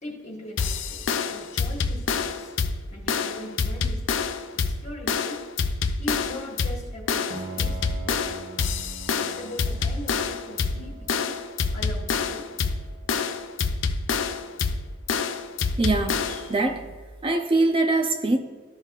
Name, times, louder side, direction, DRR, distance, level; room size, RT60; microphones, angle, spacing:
voice 1, 0.0-2.5 2.9-4.2 4.5-5.5 6.0-8.3 9.1-11.4 11.7-12.5, left 1 dB, 35° left, -2 dB, 1.4 m, -40 dB
sound 1, 0.6-16.5, left 5 dB, 80° left, 0.5 m, -27 dB
Piano, 7.3-16.9, right 4 dB, 45° right, 1.1 m, -45 dB
voice 2, 15.8-16.8 17.2-18.4, right 2 dB, 25° right, 4 dB, 0.5 m, -23 dB
13.5 x 5.5 x 2.4 m, 1.4 s
head